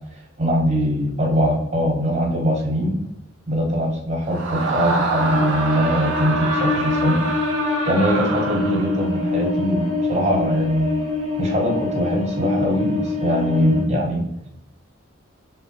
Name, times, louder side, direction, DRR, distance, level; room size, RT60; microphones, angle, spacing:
voice 1, 0.4-3.0 3.5-7.2 7.9-10.9 11.4-14.2, equal, 35° right, 0 dB, 0.7 m, -21 dB
Screaming, 4.3-9.1, right 3 dB, 60° right, 0.5 m, -26 dB
sound 1, 5.2-13.8, left 3 dB, 30° left, 1.0 m, -26 dB
3.3 x 2.1 x 2.6 m, 0.86 s
head